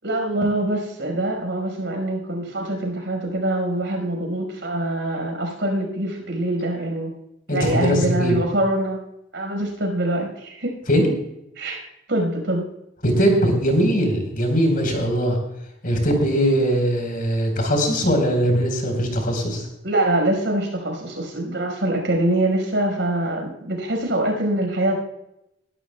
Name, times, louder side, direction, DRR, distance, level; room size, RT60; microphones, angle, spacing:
voice 1, 0.0-7.1 7.5-9.0 9.3-10.8 11.6-12.7 19.8-24.9, right 1 dB, 70° right, 1 dB, 5.3 m, -24 dB
voice 2, 7.5-8.3 10.9-11.1 13.0-15.4 15.8-19.7, equal, 50° left, 2 dB, 4.4 m, -20 dB
21.5 x 12.5 x 2.3 m, 0.84 s
head